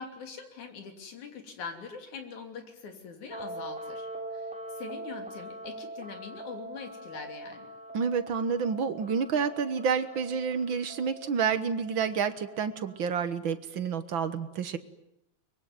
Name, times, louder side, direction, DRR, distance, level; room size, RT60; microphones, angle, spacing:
voice 1, 0.0-7.7, left 5 dB, 75° left, 5 dB, 4.5 m, -43 dB
sound 1, 3.3-13.0, right 1 dB, ahead, 4.6 m, -43 dB
voice 2, 7.9-14.8, right 6 dB, 55° right, 11 dB, 1.6 m, -29 dB
23.5 x 22.5 x 9.5 m, 0.81 s
omnidirectional pair, 3.4 m